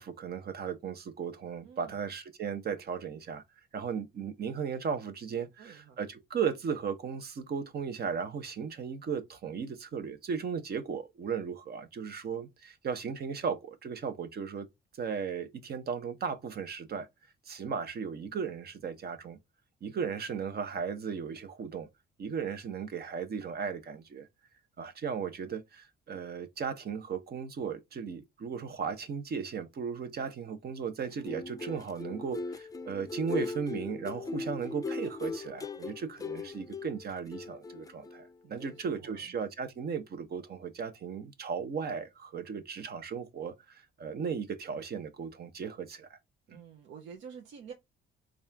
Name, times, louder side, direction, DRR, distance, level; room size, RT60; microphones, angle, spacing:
voice 1, 0.0-3.4 3.7-14.7 14.9-17.1 17.4-19.4 19.8-21.9 22.2-24.3 24.8-46.2 46.5-46.6, right 6 dB, 55° right, 0.9 m, -36 dB
voice 2, 1.6-2.0 5.3-6.0 38.4-39.3 46.5-47.7, right 6 dB, 75° right, 0.8 m, -49 dB
sound 1, 31.1-38.3 38.6-38.8, left 3 dB, 20° left, 0.5 m, -39 dB
4.1 x 2.5 x 3.4 m
cardioid pair, 90°, 20 cm